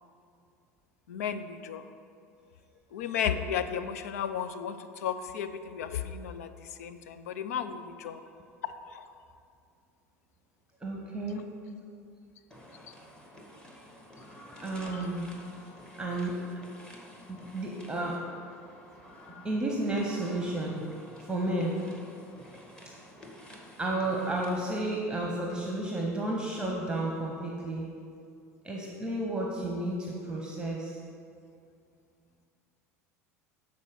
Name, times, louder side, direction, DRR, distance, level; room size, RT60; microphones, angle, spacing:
voice 1, 1.1-1.8 2.9-8.2 8.9-9.0, left 8 dB, 75° left, 10 dB, 0.4 m, -34 dB
voice 2, 10.8-11.4 14.6-15.3 16.0-16.6 17.3-18.2 19.4-20.8 21.2-21.8 23.8-27.9 28.6-31.0, right 1 dB, 10° right, -1 dB, 1.0 m, -32 dB
sound 1, 12.5-25.1, equal, 10° left, 1.2 m, -50 dB
7.4 x 4.1 x 6.6 m, 2.4 s
hypercardioid pair, 80°, 8 cm